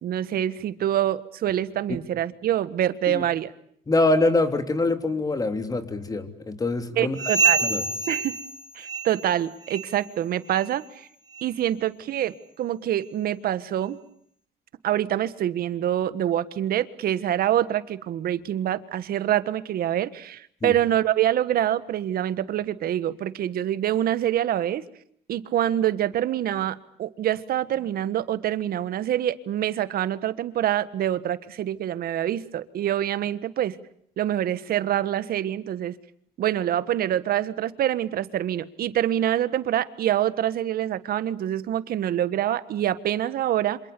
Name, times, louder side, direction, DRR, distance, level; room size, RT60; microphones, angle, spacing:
voice 1, 0.0-3.5 7.0-7.7 8.1-8.4 8.7-11.1 11.4-14.0 14.8-24.8 25.3-33.8 34.2-35.9 36.4-43.8, right 11 dB, 60° right, 14 dB, 1.5 m, -26 dB
voice 2, 3.9-7.2 7.6-7.8 20.6-20.7, left 2 dB, 20° left, 8 dB, 3.3 m, -24 dB
sound 1, 7.1-9.4 9.6-10.0 10.5-10.7 11.3-11.5 12.2-12.3 13.0-13.1, right 4 dB, 25° right, 2.7 m, -27 dB
27.5 x 27.0 x 6.9 m, 0.65 s
cardioid pair, 110°, 17 cm